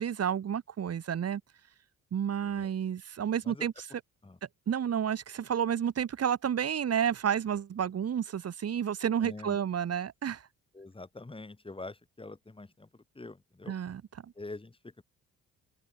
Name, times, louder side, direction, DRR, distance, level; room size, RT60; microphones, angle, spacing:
voice 1, 0.0-1.4 2.1-3.7 4.7-10.4 13.7-14.3, right 8 dB, 55° right, 3.2 m, -31 dB
voice 2, 9.2-9.6 10.7-13.7 14.3-15.0, left 2 dB, 15° left, 4.4 m, -45 dB
cardioid pair, 90°, 30 cm